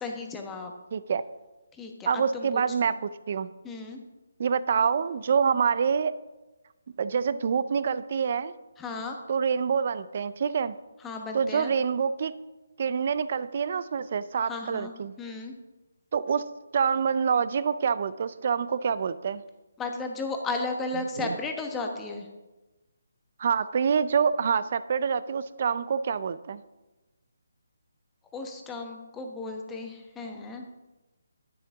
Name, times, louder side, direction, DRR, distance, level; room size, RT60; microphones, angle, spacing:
voice 1, 0.0-0.7 1.7-2.9 3.6-4.0 8.8-9.2 11.0-11.7 14.5-15.5 19.8-22.3 28.3-30.7, left 3 dB, 10° left, 3 dB, 1.2 m, -35 dB
voice 2, 0.9-1.2 2.1-3.5 4.4-6.1 7.0-8.5 9.3-10.7 11.3-12.3 12.8-15.1 16.1-16.4 16.7-19.4 21.2-21.4 23.4-26.6, right 6 dB, 45° right, 15 dB, 0.5 m, -26 dB
10.5 x 10.0 x 3.6 m, 1.1 s
hypercardioid pair, 160°, 0 cm